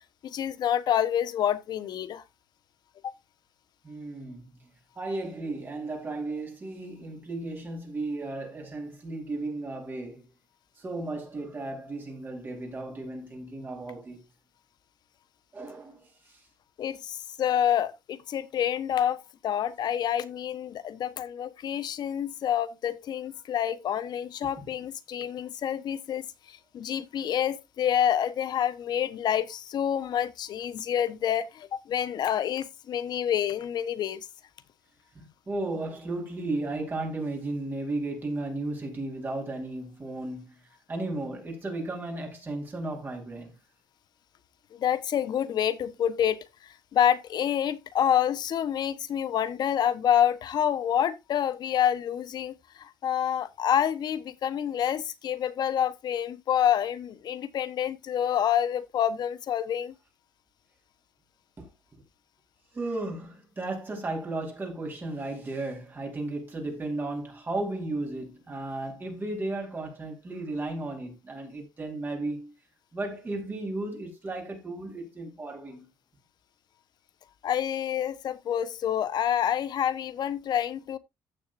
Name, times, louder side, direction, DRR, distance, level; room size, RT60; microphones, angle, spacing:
voice 1, 0.2-2.2 3.0-3.1 16.8-34.3 44.7-59.9 77.4-81.0, left 9 dB, 55° left, 1.1 m, -28 dB
voice 2, 3.8-4.6 5.0-10.3 10.8-14.2 15.5-16.4 24.6-24.7 35.1-40.6 40.9-43.5 61.6-61.7 62.7-72.5 72.9-75.9, right 2 dB, 25° right, 4.2 m, -34 dB
15.0 x 6.6 x 2.6 m
cardioid pair, 130°, 8 cm